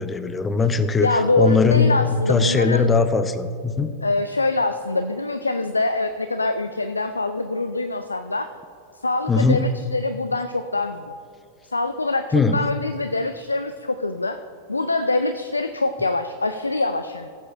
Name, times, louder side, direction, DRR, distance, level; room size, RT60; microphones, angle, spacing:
voice 1, 0.0-1.1 1.4-3.9 9.3-9.6 12.3-12.6, left 4 dB, 15° left, 11 dB, 0.5 m, -20 dB
voice 2, 1.0-2.9 4.0-8.5 9.0-11.2 11.7-12.2 12.5-14.4 14.7-17.3, left 2 dB, 80° left, 9 dB, 0.3 m, -24 dB
15.5 x 8.0 x 2.5 m, 2.5 s
figure-of-eight pair, 90°, 0 cm